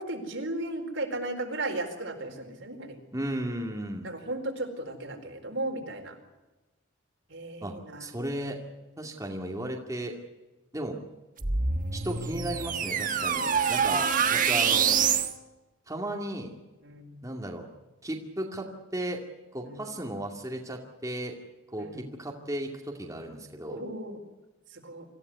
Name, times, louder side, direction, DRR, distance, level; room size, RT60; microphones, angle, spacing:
voice 1, 0.0-3.0 4.0-6.2 7.3-8.1 13.8-14.0 16.8-17.2 19.6-19.9 21.8-22.1 23.7-24.2 24.7-25.1, right 2 dB, 65° right, 3 dB, 4.5 m, -35 dB
voice 2, 3.1-4.1 7.6-8.6 9.0-10.1 10.7-11.0 11.9-15.0 15.9-16.5 17.2-17.7 18.0-19.2 19.5-21.3 21.7-23.8, right 1 dB, 15° right, 1 dB, 2.3 m, -35 dB
sound 1, 11.4-15.3, right 6 dB, 40° right, 1.3 m, -26 dB
25.5 x 15.5 x 9.4 m, 1.1 s
head